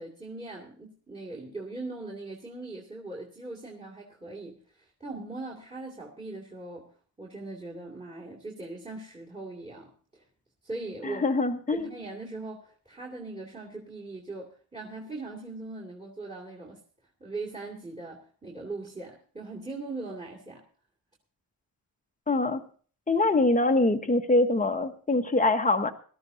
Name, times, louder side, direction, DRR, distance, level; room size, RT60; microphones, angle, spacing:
voice 1, 0.0-6.9 7.2-10.2 10.6-11.3 11.7-16.8 17.2-20.6, right 2 dB, 15° right, 0 dB, 2.4 m, -40 dB
voice 2, 11.0-11.9 22.3-22.6 23.1-25.9, left 2 dB, 15° left, 7 dB, 1.1 m, -24 dB
19.5 x 13.0 x 2.7 m, 0.43 s
cardioid pair, 95°, 47 cm